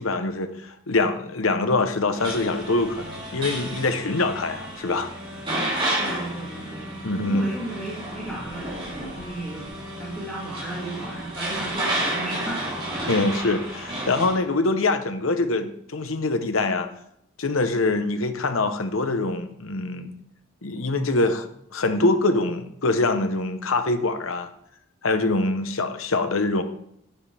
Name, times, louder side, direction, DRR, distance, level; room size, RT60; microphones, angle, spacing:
voice 1, 0.0-5.1 7.0-7.5 13.1-16.9 17.4-20.1 20.6-24.5 25.0-26.6, left 2 dB, 85° left, 8 dB, 1.0 m, -24 dB
sound 1, 2.1-14.4, right 1 dB, 25° right, 3.9 m, -31 dB
voice 2, 6.0-9.7 10.0-13.1, right 1 dB, 5° left, -8 dB, 2.4 m, -35 dB
9.9 x 9.9 x 3.5 m, 0.73 s
head